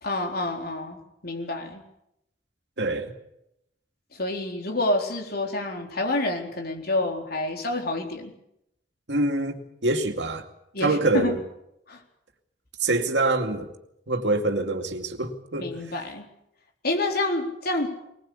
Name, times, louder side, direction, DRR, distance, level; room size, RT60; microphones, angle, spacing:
voice 1, 0.0-1.8 4.1-8.3 10.7-11.3 11.9-12.0 15.6-16.2 16.8-17.9, left 2 dB, 60° left, 4.0 m, -28 dB
voice 2, 2.8-3.1 9.1-10.5 10.8-11.4 12.8-13.7 14.1-15.8, right 2 dB, 70° right, 2.4 m, -25 dB
21.0 x 20.5 x 8.6 m
head